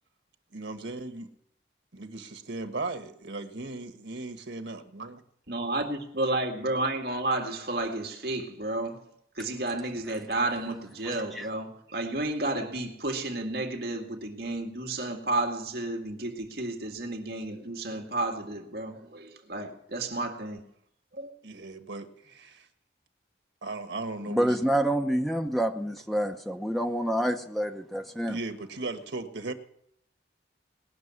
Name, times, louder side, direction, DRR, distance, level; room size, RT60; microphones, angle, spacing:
voice 1, 0.5-1.3 1.9-5.2 21.4-22.7 23.6-24.6 28.3-29.5, right 2 dB, 80° right, 1.5 m, -37 dB
voice 2, 5.5-9.1 9.4-20.6 21.1-21.3, right 2 dB, 55° right, 2.0 m, -32 dB
voice 3, 24.3-28.4, right 1 dB, ahead, 0.8 m, -27 dB
19.5 x 6.8 x 9.6 m
head